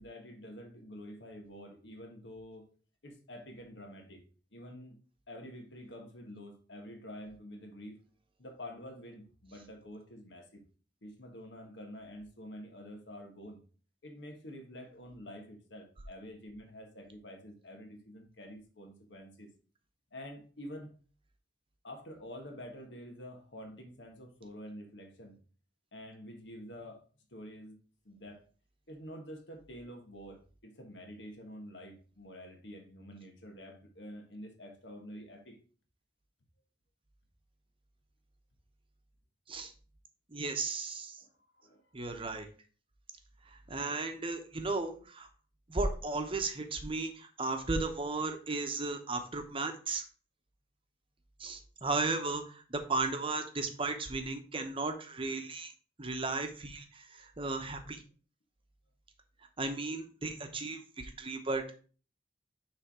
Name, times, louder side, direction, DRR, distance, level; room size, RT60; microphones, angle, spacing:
voice 1, 0.0-2.7 3.0-4.2 4.5-5.0 5.3-8.0 8.4-10.6 11.0-13.6 14.0-19.5 20.1-20.9 21.8-25.4 25.9-27.0 27.3-28.4 28.9-35.6 41.2-41.8 48.2-48.3, equal, 75° left, 1.4 m, -48 dB
voice 2, 40.3-41.2 41.9-42.5 43.5-45.3 45.7-50.0 51.4-55.7 56.0-58.0 59.6-61.7, right 3 dB, 30° right, 0.8 m, -35 dB
6.5 x 3.4 x 4.8 m
head